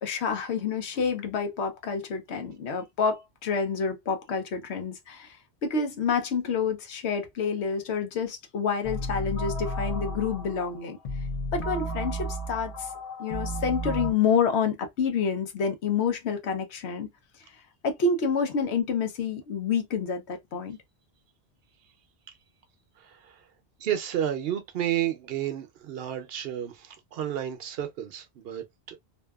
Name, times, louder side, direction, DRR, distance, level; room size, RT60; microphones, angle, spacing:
voice 1, 0.0-5.4 5.6-11.0 11.5-12.9 13.2-17.1 17.8-20.8, left 5 dB, 90° left, 1.0 m, -28 dB
sound 1, 8.8-14.1, equal, 40° left, 0.6 m, -33 dB
voice 2, 23.0-23.4 23.8-29.0, right 10 dB, 70° right, 0.8 m, -31 dB
2.7 x 2.2 x 2.2 m
omnidirectional pair, 1.1 m